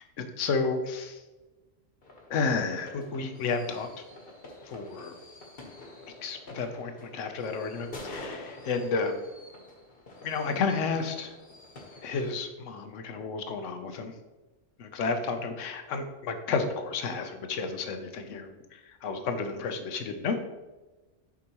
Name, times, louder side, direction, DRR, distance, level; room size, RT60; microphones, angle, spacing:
voice 1, 0.2-1.2 2.3-3.9 4.7-5.1 6.2-9.2 10.2-11.3 12.0-14.1 14.8-20.4, left 4 dB, 80° left, 7 dB, 1.1 m, -31 dB
sound 1, 2.0-12.4, left 2 dB, 50° left, 1.3 m, -47 dB
9.8 x 4.9 x 2.9 m, 1.1 s
omnidirectional pair, 1.3 m